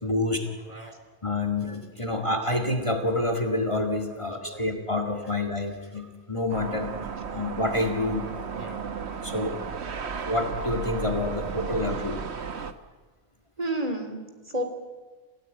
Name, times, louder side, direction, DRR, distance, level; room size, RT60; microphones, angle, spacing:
voice 1, 0.0-0.9 1.2-7.0 7.3-8.3 9.2-9.7 10.3-12.2 12.5-12.7, left 2 dB, 25° left, 5 dB, 2.0 m, -28 dB
sound 1, 6.5-12.7, right 6 dB, 70° right, 1.5 m, -34 dB
voice 2, 13.6-14.6, right 1 dB, 35° right, 5 dB, 3.1 m, -32 dB
29.0 x 16.0 x 9.1 m, 1.3 s
omnidirectional pair, 1.2 m